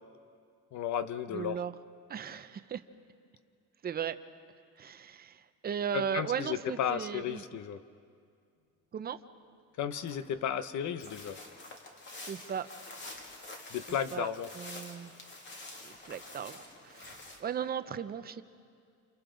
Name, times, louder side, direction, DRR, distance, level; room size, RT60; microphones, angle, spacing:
voice 1, 0.7-1.6 5.9-7.8 9.8-11.4 13.7-14.5, left 9 dB, 55° left, 12 dB, 0.8 m, -34 dB
voice 2, 1.3-1.7 2.1-2.8 3.8-4.2 4.8-7.4 8.9-9.2 12.3-12.7 13.9-14.3 14.6-15.1 15.8-18.4, right 8 dB, 30° right, 11 dB, 0.6 m, -37 dB
sound 1, 8.6-8.7 9.7-10.3 10.9-11.4 12.9-13.3 13.8-14.1 14.8-14.9 15.4-17.3 17.8-17.9, left 2 dB, 80° left, 4.9 m, -57 dB
sound 2, 11.0-17.4, left 2 dB, 35° left, 2.2 m, -48 dB
29.5 x 28.0 x 3.9 m, 2.2 s
cardioid pair, 170°, 34 cm